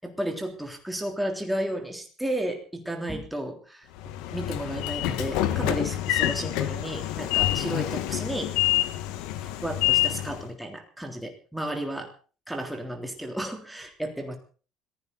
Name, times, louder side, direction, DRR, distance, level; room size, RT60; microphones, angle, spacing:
voice 1, 0.0-8.5 9.4-12.1 12.5-14.4, right 1 dB, 5° right, 2 dB, 3.4 m, -33 dB
Train / Sliding door, 4.0-10.5, left 15 dB, 85° left, 1.7 m, -27 dB
21.5 x 15.5 x 4.1 m, 0.39 s
cardioid pair, 160°, 0 cm